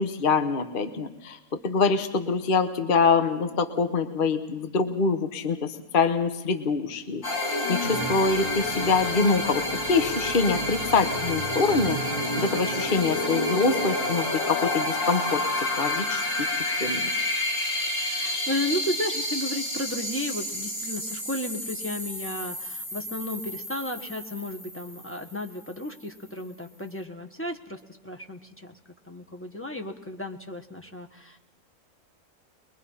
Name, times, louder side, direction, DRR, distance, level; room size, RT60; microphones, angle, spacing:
voice 1, 0.0-16.5 16.8-17.3, left 4 dB, 40° left, 8 dB, 1.2 m, -25 dB
sound 1, 7.2-25.7, left 1 dB, 80° left, 4.2 m, -29 dB
voice 2, 17.9-28.7 29.0-31.4, left 1 dB, 10° left, 3 dB, 1.4 m, -34 dB
23.0 x 22.5 x 5.6 m, 1.0 s
omnidirectional pair, 1.6 m